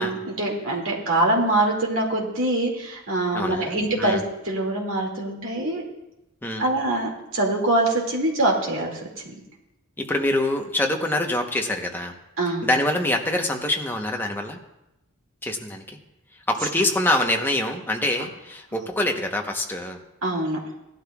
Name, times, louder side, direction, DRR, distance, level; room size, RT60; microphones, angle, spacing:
voice 1, 0.0-4.2 4.4-5.8 6.6-9.0 9.3-9.4 12.4-12.7 20.2-20.6, right 2 dB, 60° right, -1 dB, 2.2 m, -24 dB
voice 2, 3.3-4.2 6.4-6.7 10.0-12.1 12.6-14.6 15.4-16.0 16.5-20.0, left 1 dB, 10° left, 2 dB, 0.9 m, -25 dB
17.0 x 12.0 x 2.3 m, 0.90 s
head